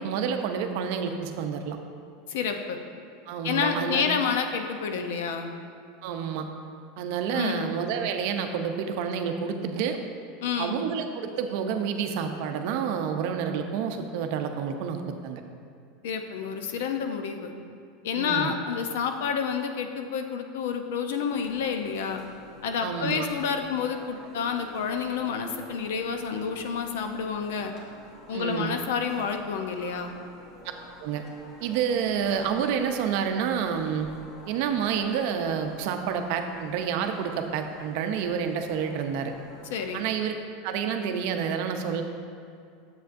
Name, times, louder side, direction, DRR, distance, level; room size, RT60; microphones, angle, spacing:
voice 1, 0.0-1.8 3.3-4.1 6.0-6.5 7.0-10.0 10.6-15.4 18.1-18.5 22.8-23.3 28.3-28.7 31.0-31.2 31.6-34.1 34.5-39.3 39.9-40.3 40.6-42.0, right 7 dB, 55° right, 5 dB, 0.6 m, -29 dB
voice 2, 2.3-2.8 3.4-5.5 7.3-7.7 10.4-10.8 16.0-17.5 18.0-22.2 22.6-27.7 28.3-30.1 39.7-40.0, left 6 dB, 80° left, 6 dB, 0.7 m, -29 dB
sound 1, 21.3-40.2, left 1 dB, 30° left, 1.3 m, -49 dB
9.3 x 7.5 x 2.6 m, 2.4 s
supercardioid pair, 160°, 0 cm